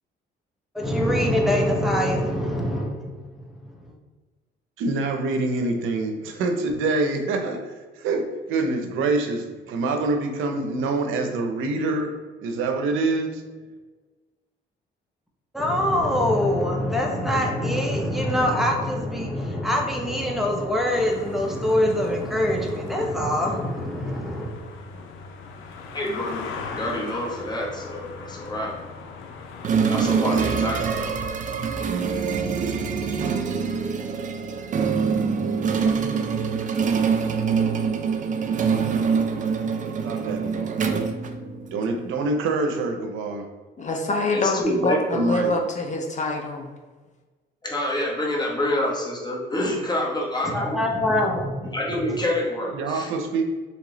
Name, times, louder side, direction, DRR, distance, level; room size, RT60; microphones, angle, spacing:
voice 1, 0.7-3.7 15.5-24.6 50.4-52.0, left 1 dB, ahead, 0 dB, 0.8 m, -24 dB
voice 2, 4.8-13.4 40.0-40.8 41.7-43.5 45.1-45.5 52.7-53.4, right 3 dB, 85° right, 5 dB, 0.6 m, -26 dB
sound 1, 20.9-29.7, left 4 dB, 90° left, 0.6 m, -39 dB
voice 3, 25.9-26.4 26.7-28.8 29.9-31.2 44.3-45.0 47.6-50.8 51.7-53.1, left 1 dB, 20° left, -3 dB, 1.1 m, -27 dB
sound 2, 29.6-41.9, right 6 dB, 40° right, 0.4 m, -24 dB
voice 4, 43.8-46.7, left 2 dB, 40° left, 2 dB, 0.6 m, -25 dB
3.1 x 3.0 x 3.8 m, 1.3 s
cardioid pair, 90°, 20 cm